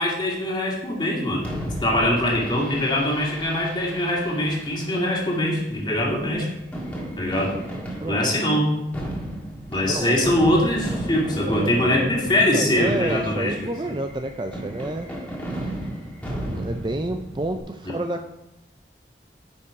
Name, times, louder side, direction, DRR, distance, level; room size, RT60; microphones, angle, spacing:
voice 1, 0.0-1.5 1.8-6.5 7.2-7.6 8.0-8.7 9.7-13.6 17.9-18.0, left 1 dB, 25° left, -2 dB, 2.1 m, -22 dB
Fireworks, 1.4-17.6, right 1 dB, 10° left, 1.7 m, -34 dB
voice 2, 8.0-8.4 9.9-10.3 11.5-12.1 12.5-15.1 16.4-18.3, right 1 dB, 25° right, 5 dB, 0.5 m, -29 dB
10.0 x 5.6 x 4.7 m, 0.89 s
head